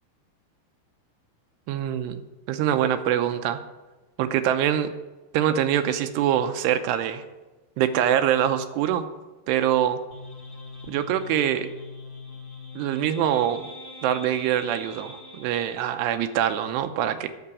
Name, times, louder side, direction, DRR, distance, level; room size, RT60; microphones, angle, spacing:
voice 1, 1.7-3.6 4.2-4.9 5.3-7.2 7.8-9.1 9.5-10.0 10.9-11.7 12.8-13.7 14.0-17.3, right 10 dB, 85° right, 9 dB, 2.9 m, -24 dB
sound 1, 10.1-15.5, left 3 dB, 75° left, 0.6 m, -42 dB
10.0 x 6.8 x 8.4 m, 1.1 s
omnidirectional pair, 4.8 m